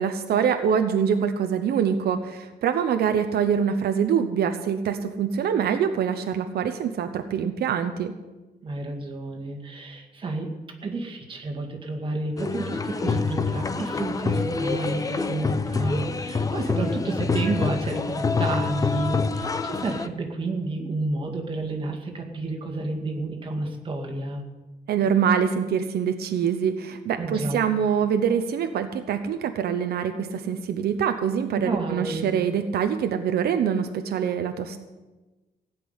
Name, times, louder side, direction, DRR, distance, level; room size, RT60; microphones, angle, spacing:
voice 1, 0.0-8.2 24.9-34.8, right 7 dB, 80° right, 8 dB, 0.9 m, -24 dB
voice 2, 8.6-10.5 10.8-24.4 27.2-27.6 31.6-32.3, right 2 dB, 30° right, 2 dB, 2.1 m, -30 dB
sound 1, 12.4-20.1, left 4 dB, 20° left, 0.6 m, -26 dB
16.5 x 6.0 x 9.6 m, 1.2 s
wide cardioid pair, 160°, 16 cm